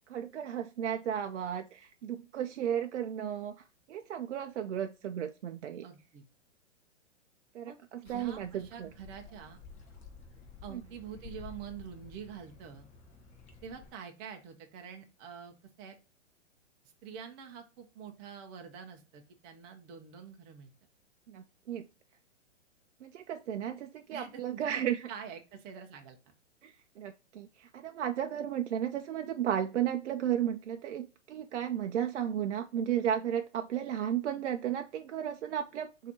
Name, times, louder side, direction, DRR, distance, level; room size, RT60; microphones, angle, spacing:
voice 1, 0.1-5.9 7.5-8.9 10.7-10.8 21.3-21.9 23.0-25.1 26.6-36.1, right 9 dB, 70° right, 7 dB, 0.5 m, -34 dB
voice 2, 5.8-6.2 7.7-7.8 8.0-9.6 10.6-12.9 13.6-15.9 17.0-20.7 24.1-24.8 25.1-26.3, right 7 dB, 25° right, 4 dB, 0.7 m, -46 dB
sound 1, 8.1-13.9, left 5 dB, 20° left, 0.8 m, -52 dB
4.1 x 2.8 x 4.2 m, 0.32 s
hypercardioid pair, 125°, 36 cm